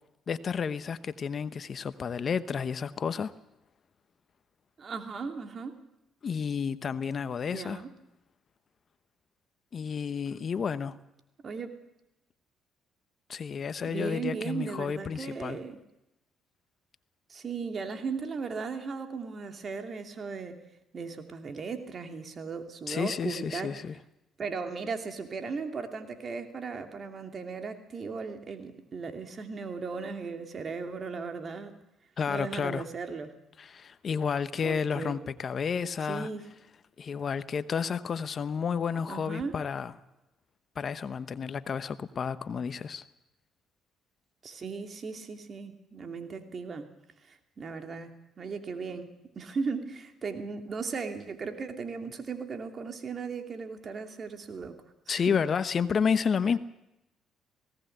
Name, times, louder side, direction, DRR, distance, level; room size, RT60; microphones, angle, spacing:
voice 1, 0.3-3.3 6.2-7.8 9.7-11.0 13.3-15.6 22.9-24.0 32.2-32.8 33.6-36.3 37.0-39.9 40.8-43.0 55.1-56.6, left 6 dB, 50° left, 14 dB, 1.0 m, -31 dB
voice 2, 4.8-5.8 7.5-7.9 11.4-11.7 13.8-15.8 17.3-20.6 20.9-23.7 24.4-31.7 32.3-33.3 34.6-35.3 36.1-36.4 39.1-39.5 44.4-46.9 47.2-48.1 48.4-54.8 55.1-55.4, right 5 dB, 45° right, 6 dB, 2.8 m, -37 dB
19.0 x 17.5 x 8.0 m, 0.91 s
supercardioid pair, 65°, 0 cm